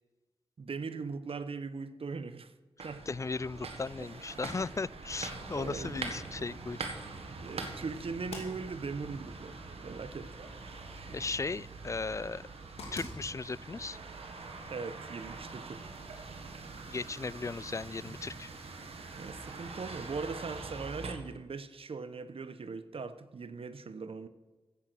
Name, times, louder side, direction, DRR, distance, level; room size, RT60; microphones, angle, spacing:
voice 1, 0.6-2.5 2.8-3.1 5.5-6.1 7.4-10.3 14.7-15.9 19.1-24.3, right 4 dB, 70° right, 0.9 m, -40 dB
sound 1, 2.8-21.1, right 3 dB, 90° right, 1.6 m, -44 dB
voice 2, 3.1-6.8 11.1-12.4 12.9-14.0 16.9-18.5, left 4 dB, 30° left, 0.3 m, -36 dB
sound 2, 4.3-15.9, left 2 dB, 90° left, 2.8 m, -53 dB
15.5 x 8.1 x 6.2 m
cardioid pair, 55°, 10 cm